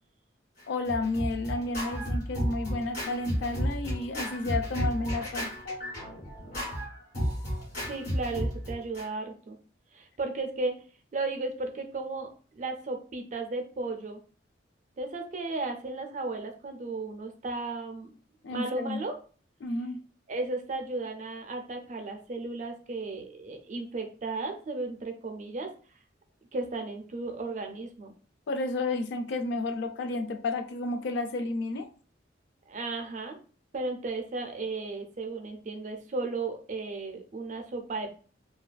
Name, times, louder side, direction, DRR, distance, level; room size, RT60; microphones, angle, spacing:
Scratching (performance technique), 0.6-9.1, equal, 45° left, 1.4 m, -33 dB
voice 1, 0.7-5.5 18.4-19.0 19.6-20.0 28.5-31.9, left 2 dB, 65° left, 8 dB, 0.3 m, -31 dB
voice 2, 7.8-9.6 9.9-10.8 11.1-12.3 12.5-14.2 15.0-18.1 18.5-19.2 20.3-25.7 26.5-28.1 32.7-33.4 33.7-38.1, right 3 dB, 40° right, 4 dB, 0.4 m, -35 dB
2.4 x 2.3 x 2.2 m, 0.40 s
head